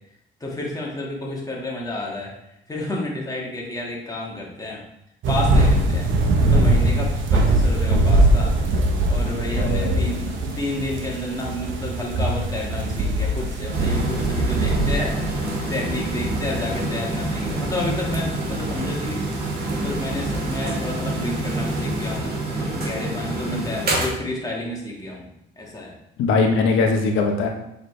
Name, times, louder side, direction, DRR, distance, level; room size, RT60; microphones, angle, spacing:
voice 1, 0.4-2.3 2.7-4.8 5.3-6.1 6.4-8.5 9.1-15.4 15.7-19.2 19.7-25.3 25.6-26.0, left 1 dB, 20° left, -3 dB, 1.8 m, -30 dB
sound 1, 5.2-22.2, right 1 dB, 75° right, 1.0 m, -23 dB
voice 2, 9.5-10.2 23.5-23.6 26.2-27.5, left 4 dB, 85° left, 2 dB, 1.0 m, -21 dB
sound 2, 13.7-24.1, right 1 dB, 55° right, 2.0 m, -27 dB
7.1 x 4.0 x 3.3 m, 0.81 s
cardioid pair, 90°, 20 cm